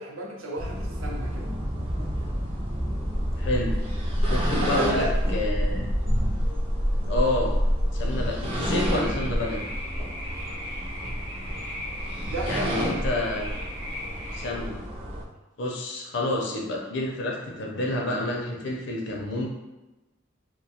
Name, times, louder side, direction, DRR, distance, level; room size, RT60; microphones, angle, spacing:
voice 1, 0.0-1.5 4.6-5.2 12.3-12.9, right 1 dB, 85° right, -1 dB, 0.5 m, -32 dB
sound 1, 0.6-15.2, equal, 30° right, 0.3 m, -28 dB
voice 2, 3.4-3.7 4.3-5.8 7.1-7.5 7.9-9.7 12.5-13.4 14.3-14.8 15.6-19.5, left 1 dB, 60° left, -1 dB, 0.5 m, -29 dB
sound 2, 8.8-14.5, equal, 50° right, 0.8 m, -38 dB
2.3 x 2.1 x 2.7 m, 1.0 s
head